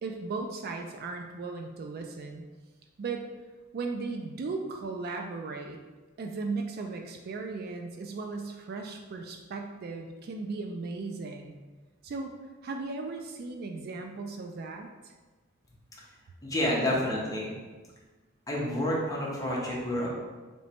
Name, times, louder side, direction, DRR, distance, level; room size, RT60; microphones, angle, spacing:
voice 1, 0.0-2.5 3.0-3.3 3.7-5.8 6.2-11.5 12.0-12.3 12.6-15.1, right 3 dB, 50° right, 3 dB, 0.3 m, -36 dB
voice 2, 16.4-17.5 18.5-20.1, left 1 dB, 15° left, -4 dB, 0.8 m, -29 dB
3.2 x 3.0 x 4.2 m, 1.3 s
head